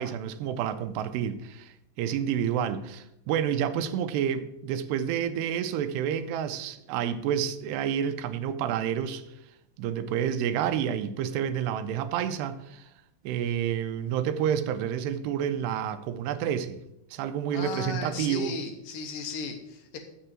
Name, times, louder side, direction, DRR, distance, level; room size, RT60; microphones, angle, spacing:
voice 1, 0.0-9.2 9.8-12.9 13.2-16.8 17.1-18.6, right 9 dB, 85° right, 2.7 m, -29 dB
voice 2, 17.5-20.0, left 5 dB, 70° left, 2.2 m, -36 dB
6.8 x 6.6 x 7.4 m
omnidirectional pair, 4.8 m